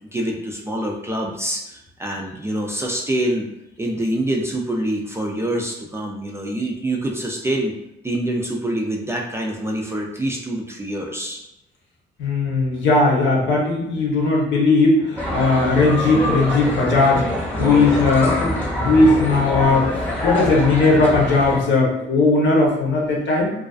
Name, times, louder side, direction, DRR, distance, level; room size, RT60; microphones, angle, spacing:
voice 1, 0.1-3.5 3.8-7.8 8.0-11.4 17.6-18.4 19.0-19.2, right 1 dB, 15° right, -1 dB, 0.3 m, -26 dB
voice 2, 12.2-17.3 17.6-18.5 18.8-19.9 20.2-23.5, left 3 dB, 65° left, -2 dB, 0.8 m, -17 dB
sound 1, 15.2-21.6, left 1 dB, 10° left, 0.8 m, -25 dB
2.4 x 2.3 x 2.3 m, 0.88 s
cardioid pair, 90°, 20 cm